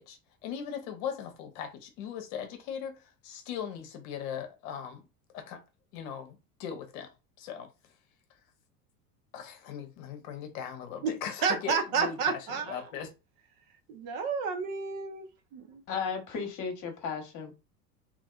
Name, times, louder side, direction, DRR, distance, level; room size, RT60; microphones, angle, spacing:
voice 1, 0.0-5.0 5.3-5.6 5.9-7.1 7.4-7.7 9.3-13.1, left 8 dB, 55° left, 0.9 m, -39 dB
voice 2, 11.4-12.8 13.9-15.3 15.5-15.8, right 5 dB, 50° right, 0.9 m, -30 dB
voice 3, 15.9-17.5, left 5 dB, 40° left, 1.2 m, -34 dB
2.9 x 2.6 x 2.4 m
hypercardioid pair, 85°, 48 cm